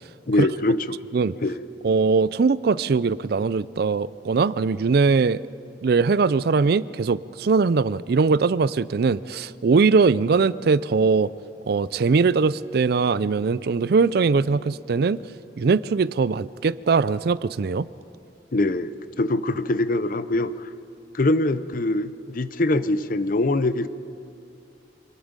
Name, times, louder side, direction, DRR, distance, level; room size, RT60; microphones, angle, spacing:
voice 1, 0.3-1.0 1.4-1.6 18.5-18.9 19.2-20.7 21.1-23.9, left 2 dB, 50° left, 14 dB, 0.7 m, -23 dB
voice 2, 1.8-5.4 5.8-11.3 11.7-15.2 15.6-17.9, right 4 dB, 60° right, 19 dB, 0.4 m, -21 dB
25.5 x 20.0 x 5.2 m, 2.6 s
head